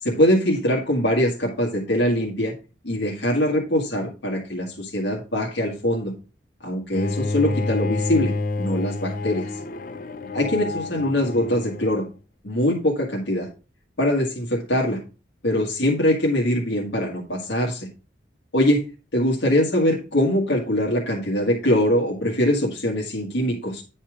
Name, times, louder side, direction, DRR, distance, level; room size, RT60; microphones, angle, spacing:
voice 1, 0.0-2.5 2.8-6.1 6.6-9.5 10.3-12.0 12.4-13.5 14.0-15.0 15.4-17.9 18.5-18.9 19.1-23.8, left 1 dB, 75° left, -2 dB, 1.8 m, -22 dB
Bowed string instrument, 6.9-12.0, left 3 dB, 50° left, 0.6 m, -28 dB
10.0 x 4.3 x 4.9 m, 0.33 s
head